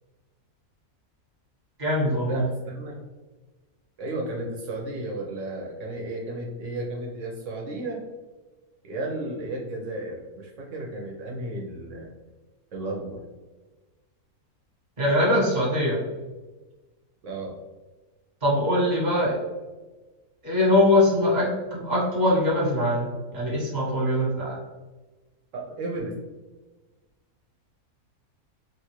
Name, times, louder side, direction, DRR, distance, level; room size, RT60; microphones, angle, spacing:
voice 1, 1.8-2.4 15.0-16.0 18.4-19.3 20.4-24.6, left 1 dB, 35° right, -5 dB, 1.0 m, -22 dB
voice 2, 2.7-3.0 4.0-8.0 8.8-12.1 12.7-13.2 17.2-17.5 25.5-26.1, right 2 dB, 65° right, -2 dB, 0.9 m, -33 dB
3.0 x 2.4 x 2.9 m, 1.2 s
omnidirectional pair, 1.6 m